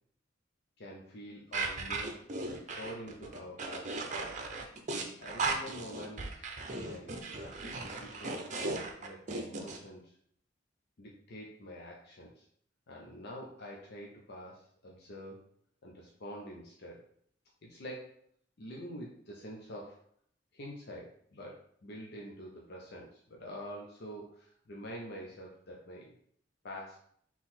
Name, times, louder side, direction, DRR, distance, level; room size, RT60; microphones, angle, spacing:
voice 1, 0.8-2.2 2.6-4.7 5.2-10.1 11.0-12.5 12.9-15.5 15.8-17.0 17.6-18.2 18.6-20.0 20.5-26.1 26.6-27.0, equal, 60° left, -2 dB, 0.6 m, -46 dB
sound 1, 1.5-9.8, right 3 dB, 40° right, 0.6 m, -37 dB
3.9 x 3.0 x 4.2 m, 0.65 s
head